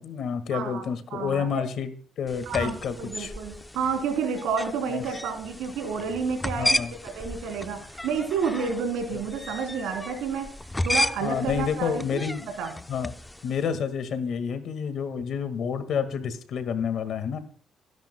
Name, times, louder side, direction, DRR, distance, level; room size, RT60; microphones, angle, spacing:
voice 1, 0.0-1.9 2.2-3.3 4.9-5.0 6.6-6.9 9.1-9.2 11.2-12.5 12.9-13.1 13.4-17.4, left 7 dB, 70° left, 11 dB, 1.7 m, -29 dB
voice 2, 0.5-0.8 1.1-1.6 2.5-6.8 7.0-10.5 10.8-12.2 12.6-12.7, right 5 dB, 90° right, 5 dB, 3.2 m, -30 dB
sound 1, 2.3-13.6, left 1 dB, 10° left, 0.6 m, -33 dB
29.5 x 10.5 x 2.2 m, 0.43 s
cardioid pair, 90°, 0 cm